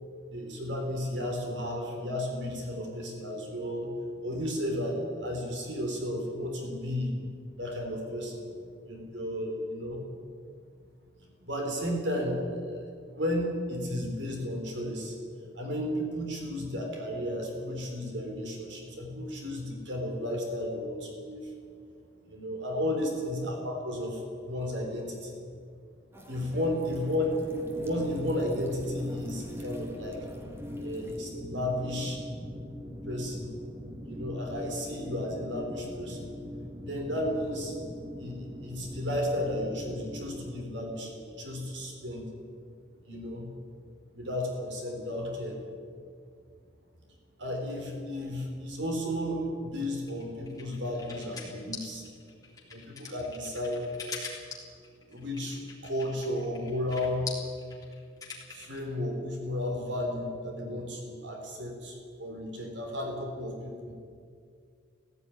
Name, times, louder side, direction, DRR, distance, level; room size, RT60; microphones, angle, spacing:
voice 1, 0.3-3.9 4.2-7.1 7.6-8.5 8.9-10.0 11.4-15.2 15.5-21.5 22.3-25.4 26.3-27.3 27.8-30.2 30.8-32.2 33.1-33.5 34.1-36.3 36.8-37.7 38.2-42.2 43.1-43.5 44.1-45.6 47.4-52.0 52.7-53.9 55.1-57.3 58.5-63.9, left 1 dB, 70° right, 2 dB, 3.7 m, -33 dB
sound 1, 26.1-31.2, equal, 15° right, 2.1 m, -51 dB
sound 2, 27.4-40.5, left 1 dB, 30° right, 1.6 m, -41 dB
sound 3, 50.1-58.8, left 5 dB, 20° left, 3.6 m, -43 dB
16.5 x 16.0 x 9.8 m, 2.2 s
head